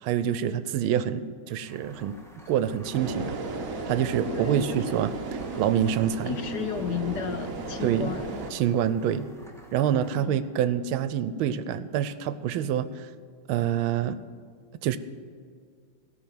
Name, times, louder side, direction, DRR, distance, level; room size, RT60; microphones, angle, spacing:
voice 1, 0.0-2.2 2.5-3.4 3.9-6.4 7.8-8.1 8.5-9.3 9.7-13.1 13.5-14.2 14.8-15.0, right 9 dB, 90° right, 14 dB, 1.5 m, -26 dB
sound 1, 1.7-11.0, equal, ahead, 1.1 m, -52 dB
sound 2, 2.9-8.5, right 3 dB, 50° right, 1.2 m, -34 dB
voice 2, 4.3-4.8 6.2-8.3 10.2-10.4, left 9 dB, 70° left, 8 dB, 1.0 m, -33 dB
17.0 x 5.9 x 9.3 m, 2.1 s
omnidirectional pair, 2.3 m